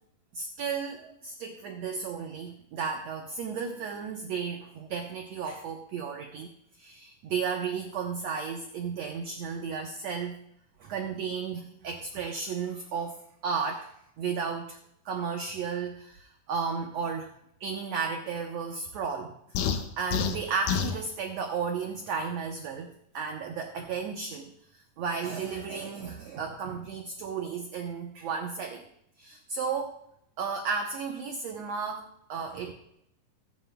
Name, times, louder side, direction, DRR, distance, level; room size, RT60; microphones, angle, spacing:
voice 1, 0.3-6.5 6.8-10.4 10.8-13.2 13.4-14.8 15.0-17.3 17.6-19.6 20.0-28.8 29.2-30.0 30.4-32.7, right 5 dB, 70° right, 3 dB, 1.6 m, -34 dB
sound 1, 19.6-21.0, left 7 dB, 75° left, 2.2 m, -28 dB
18.5 x 9.4 x 2.3 m, 0.75 s
omnidirectional pair, 4.0 m